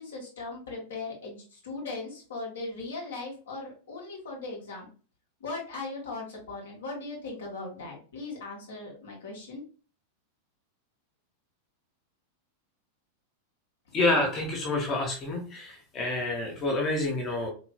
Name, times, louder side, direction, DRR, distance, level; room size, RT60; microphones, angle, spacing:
voice 1, 0.0-4.9 5.4-9.6, left 3 dB, 65° left, -2 dB, 1.4 m, -38 dB
voice 2, 13.9-17.5, left 2 dB, 30° left, 0 dB, 1.0 m, -28 dB
3.8 x 3.0 x 2.2 m, 0.38 s
figure-of-eight pair, 90°, 0 cm